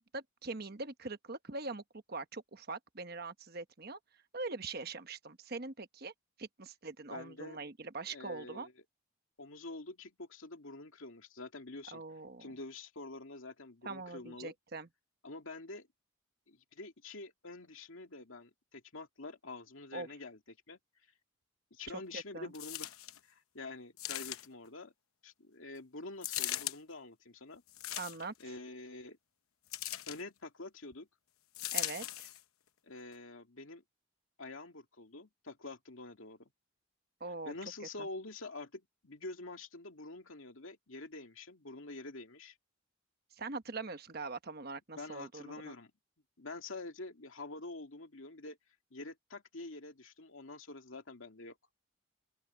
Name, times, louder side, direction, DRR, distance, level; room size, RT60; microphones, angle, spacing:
voice 1, 0.1-1.8 2.1-4.0 4.3-6.1 6.4-8.7 11.9-12.6 13.8-14.9 19.9-20.1 21.9-22.5 28.0-28.3 31.7-32.3 37.2-37.5 38.0-38.1 43.3-45.7, right 3 dB, 45° right, 1.1 m, -42 dB
voice 2, 7.1-7.6 8.1-8.7 9.4-12.0 12.4-14.5 15.2-15.9 16.5-20.8 21.7-23.0 23.2-24.9 25.2-27.6 28.4-29.2 30.1-31.1 32.8-33.8 34.4-36.5 37.5-42.6 45.0-45.9 46.4-48.6 48.9-51.6, left 2 dB, 70° left, 2.3 m, -47 dB
sound 1, 22.5-23.2 24.0-24.7 26.2-26.8 27.7-28.4 29.7-30.2 31.5-32.4 33.1-33.2, left 14 dB, 90° left, 0.9 m, -39 dB
open air
head